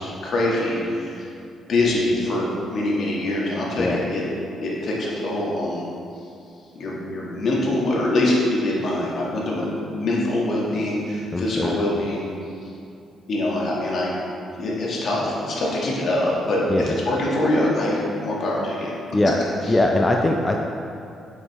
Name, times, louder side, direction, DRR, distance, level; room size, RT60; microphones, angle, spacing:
voice 1, 0.2-1.2 1.7-4.2 4.6-5.9 6.7-12.2 13.3-14.1 14.6-18.9 19.6-19.7, left 1 dB, 60° left, -4 dB, 1.4 m, -24 dB
voice 2, 11.3-11.8 16.7-16.9 19.1-19.4 19.7-20.6, left 2 dB, 20° left, 2 dB, 0.4 m, -21 dB
6.3 x 5.4 x 3.1 m, 2.5 s
cardioid pair, 90°, 0 cm